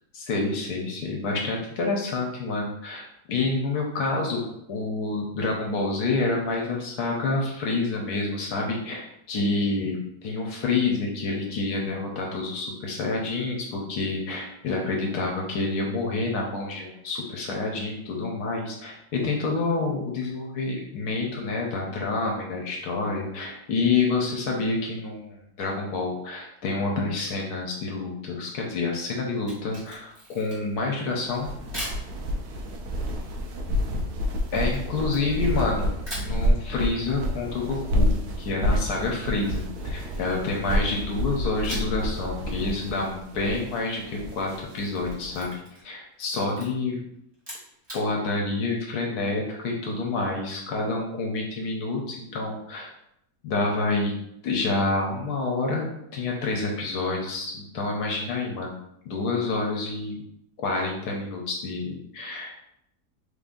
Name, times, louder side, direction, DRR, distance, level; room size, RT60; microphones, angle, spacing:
voice 1, 0.1-31.5 34.5-35.9 36.2-47.0 47.9-52.9 53.4-54.1 54.4-58.8 59.0-60.2 60.6-62.6, left 3 dB, 80° left, -1 dB, 1.2 m, -28 dB
Camera, 29.3-30.8 31.7-32.0 34.5-35.6 36.0-36.4 39.0-40.5 41.6-42.1 42.4-42.5 44.5-45.9 46.2-46.7 47.3-48.0, equal, 15° right, 1.5 m, -40 dB
sound 1, 31.3-45.5, equal, 80° right, 1.2 m, -29 dB
3.4 x 2.5 x 3.7 m, 0.76 s
omnidirectional pair, 1.7 m